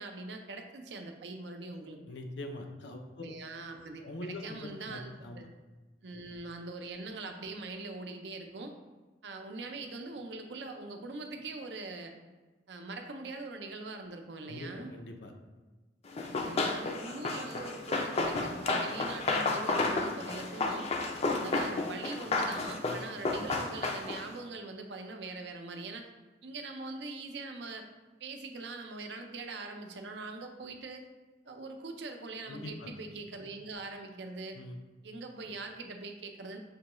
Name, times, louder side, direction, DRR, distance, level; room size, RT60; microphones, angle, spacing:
voice 1, 0.0-2.0 3.2-5.5 6.0-8.7 9.2-12.1 12.7-14.9 16.3-20.9 21.4-26.1 26.4-27.8 28.2-31.1 31.5-34.6 35.0-36.6, right 3 dB, 75° right, 4 dB, 0.5 m, -42 dB
voice 2, 2.1-3.2 4.0-5.5 14.5-15.3 22.8-23.0 32.5-32.9 34.5-34.8, left 1 dB, 85° left, 3 dB, 0.6 m, -43 dB
Run, 16.2-24.3, left 3 dB, 35° left, 0.4 m, -32 dB
6.6 x 2.3 x 3.0 m, 1.3 s
head